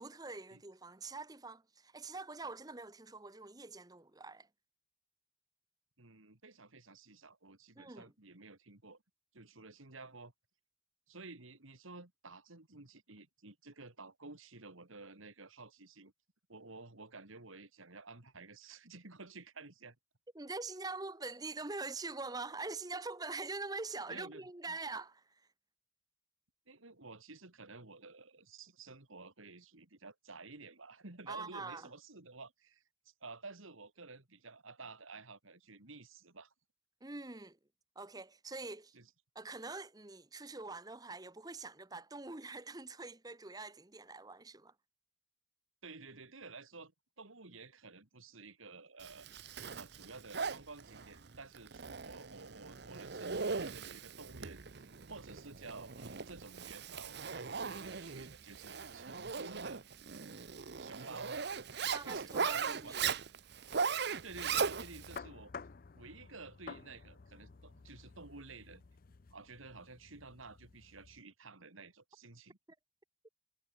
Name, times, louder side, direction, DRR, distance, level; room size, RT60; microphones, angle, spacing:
voice 1, 0.0-4.5 7.8-8.1 20.3-25.4 31.3-31.9 37.0-37.6 38.0-38.9 39.3-44.7 61.9-63.0 73.2-73.3, right 3 dB, 20° right, 0.9 m, -44 dB
voice 2, 6.0-9.0 9.3-10.3 11.1-16.1 16.5-20.0 24.1-24.4 24.7-24.8 26.7-32.8 33.2-36.5 38.9-39.1 45.8-46.9 47.2-49.3 49.7-59.8 60.8-61.4 61.8-63.0 64.2-65.5 65.9-68.8 69.3-72.6, right 3 dB, 75° right, 2.7 m, -52 dB
Zipper (clothing), 49.0-65.2, right 5 dB, 50° right, 0.8 m, -39 dB
sound 1, 64.3-71.2, left 5 dB, 45° left, 0.5 m, -52 dB
head